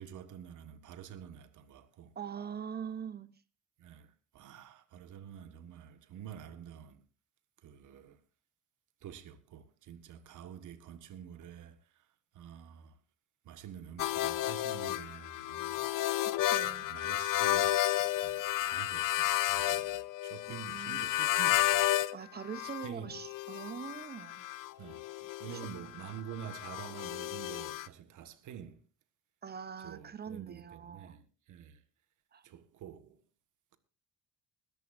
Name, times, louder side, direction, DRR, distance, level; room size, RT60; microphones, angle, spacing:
voice 1, 0.0-2.1 3.8-7.0 7.6-8.2 9.0-12.1 12.3-13.0 13.4-15.8 16.6-22.0 22.6-23.2 24.7-28.8 29.8-31.8 32.4-33.2, right 9 dB, 70° right, 1.5 m, -48 dB
voice 2, 2.2-3.3 16.2-16.9 20.6-21.1 22.1-24.4 29.4-31.2 32.3-32.4, right 7 dB, 30° right, 0.7 m, -43 dB
sound 1, 14.0-22.2 22.4-27.9, left 14 dB, 90° left, 0.8 m, -32 dB
20.5 x 14.0 x 2.6 m
cardioid pair, 150°, 31 cm